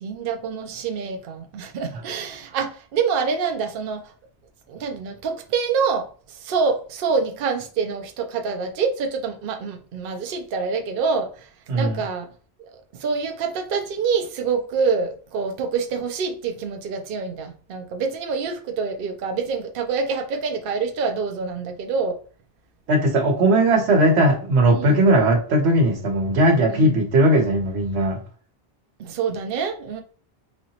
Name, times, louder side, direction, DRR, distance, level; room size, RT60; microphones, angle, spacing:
voice 1, 0.0-4.0 4.7-11.5 11.7-12.3 13.0-22.2 24.7-25.0 26.7-27.0 29.0-30.0, right 5 dB, 65° right, 0.7 m, -26 dB
voice 2, 11.7-12.0 22.9-28.2, right 1 dB, 85° right, 1.1 m, -18 dB
4.0 x 2.8 x 2.8 m
omnidirectional pair, 1.1 m